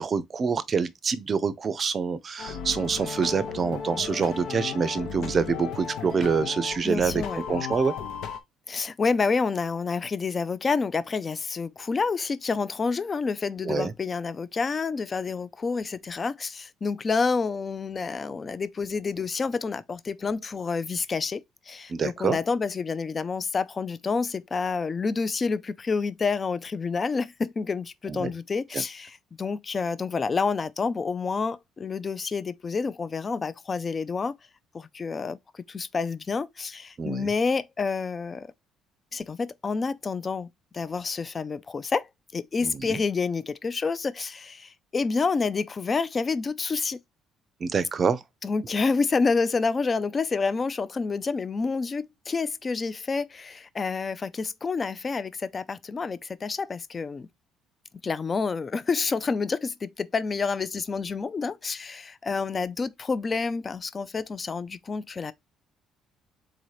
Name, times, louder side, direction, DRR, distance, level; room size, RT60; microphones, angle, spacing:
voice 1, 0.0-7.9 13.6-13.9 21.9-22.4 28.1-28.3 28.7-28.8 37.0-37.3 42.6-43.0 47.6-48.2, right 5 dB, 35° right, 0.5 m, -26 dB
sound 1, 2.4-8.4, left 7 dB, 75° left, 0.8 m, -35 dB
voice 2, 6.8-7.4 8.7-34.3 34.7-38.5 39.1-40.5 40.7-42.1 42.3-47.0 48.4-57.3 58.0-65.3, left 4 dB, 30° left, 0.4 m, -28 dB
4.0 x 2.8 x 4.7 m
cardioid pair, 115°, 0 cm